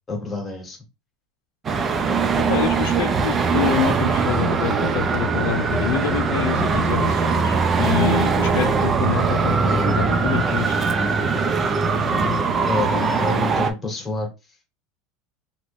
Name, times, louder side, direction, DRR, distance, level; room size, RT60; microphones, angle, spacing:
voice 1, 0.1-0.8 11.9-14.3, left 2 dB, 10° left, 1.0 m, -28 dB
Traffic noise roadway noise, 1.6-13.7, right 4 dB, 20° right, 0.4 m, -21 dB
voice 2, 2.5-10.8, left 10 dB, 70° left, 0.5 m, -26 dB
2.9 x 2.5 x 3.5 m
supercardioid pair, 165°, 0 cm